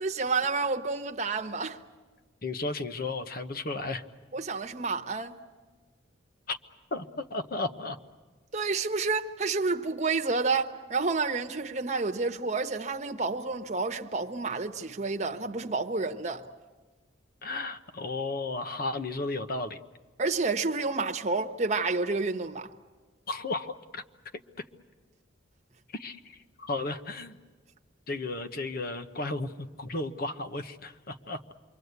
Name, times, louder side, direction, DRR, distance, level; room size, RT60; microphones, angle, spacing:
voice 1, 0.0-1.8 4.3-5.4 8.5-16.4 20.2-22.7, right 4 dB, 40° right, 1.2 m, -29 dB
voice 2, 2.4-4.0 6.5-6.6 6.9-8.0 17.4-19.8 23.3-24.0 25.9-27.4 28.1-31.5, left 2 dB, 55° left, 1.1 m, -34 dB
27.5 x 23.5 x 8.2 m
head